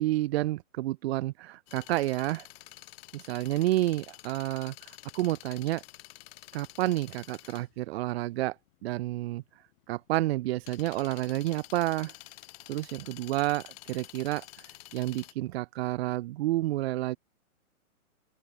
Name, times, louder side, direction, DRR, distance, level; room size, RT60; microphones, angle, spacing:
voice 1, 0.0-2.5 3.1-4.7 5.1-5.8 6.5-8.6 8.8-9.4 9.9-12.1 12.7-14.5 14.9-17.2, right 16 dB, 45° right, 2.5 m, -30 dB
sound 1, 1.7-15.3, left 19 dB, 40° left, 4.3 m, -50 dB
open air
hypercardioid pair, 145°, 44 cm